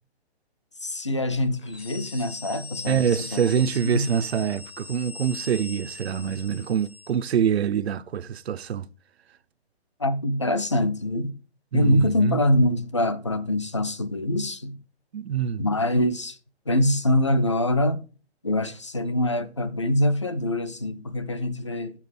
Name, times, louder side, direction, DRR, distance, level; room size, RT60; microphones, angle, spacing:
voice 1, 0.8-4.3 10.0-11.3 11.7-14.8 15.6-16.4 16.7-18.0 18.4-21.9, left 1 dB, 30° left, 0.4 m, -24 dB
sound 1, 1.6-7.3, left 4 dB, 75° left, 2.0 m, -41 dB
voice 2, 2.9-8.9 11.7-12.4 15.1-15.7, right 8 dB, 75° right, 0.6 m, -25 dB
7.4 x 7.3 x 4.0 m
hypercardioid pair, 175°, 32 cm